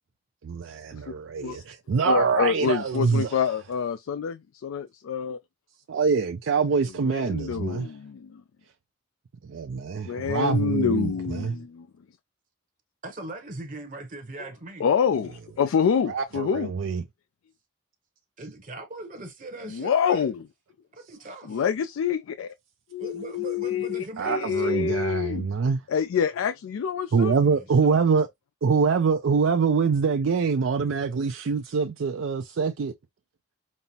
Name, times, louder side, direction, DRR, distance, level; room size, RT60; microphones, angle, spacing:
voice 1, 0.4-3.4 5.9-7.9 9.5-11.5 16.1-17.0 24.2-25.8 27.1-28.3 28.6-32.9, right 5 dB, 70° right, 0.4 m, -24 dB
voice 2, 2.0-5.4 7.0-8.4 10.1-11.9 14.8-16.7 19.7-20.4 21.5-22.5 22.9-25.5 25.9-27.4, left 7 dB, 85° left, 0.3 m, -26 dB
voice 3, 10.2-11.7 13.0-14.8 18.4-20.3 20.9-21.6 23.0-25.0 27.1-27.7, right 2 dB, 40° right, 0.8 m, -40 dB
5.3 x 2.0 x 2.8 m
head